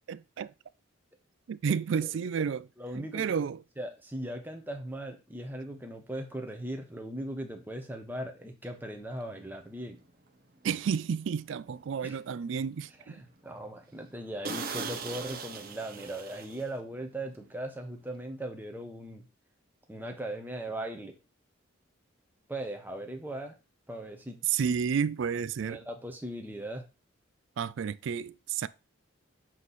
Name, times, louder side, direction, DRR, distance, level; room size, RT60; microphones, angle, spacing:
voice 1, 0.1-0.5 1.5-2.7 3.0-3.6 10.6-13.2 24.4-25.8 27.6-28.7, right 7 dB, 65° right, 0.3 m, -31 dB
voice 2, 2.8-3.2 3.8-10.0 12.0-12.2 13.1-19.2 19.9-21.1 22.5-23.6 23.9-24.4 24.6-24.8 25.6-26.8, right 1 dB, 10° right, 1.0 m, -39 dB
sound 1, 9.2-9.4 9.9-10.1 10.6-10.7 11.1-11.2 11.7-12.2 12.6-12.7 13.1-13.3 13.5-13.6 14.0-14.1 14.4-17.0 17.2-17.5, right 4 dB, 45° right, 0.9 m, -39 dB
7.4 x 3.1 x 4.1 m
head